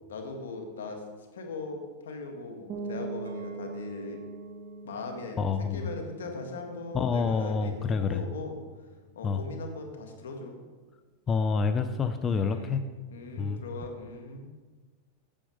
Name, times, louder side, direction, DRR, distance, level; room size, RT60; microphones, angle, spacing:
voice 1, 0.1-1.0 1.3-4.2 4.8-8.6 9.2-10.6 12.4-14.5, left 3 dB, 85° left, 4 dB, 1.8 m, -39 dB
sound 1, 2.7-8.3, right 3 dB, 45° right, 1.2 m, -42 dB
Chink clink, 3.3-8.4, right 7 dB, 90° right, 1.3 m, -56 dB
voice 2, 5.4-5.9 6.9-8.2 9.2-9.4 11.3-12.8 13.4-13.6, left 5 dB, 25° left, 9 dB, 0.6 m, -27 dB
8.7 x 7.5 x 5.1 m, 1.3 s
hypercardioid pair, 120°, 0 cm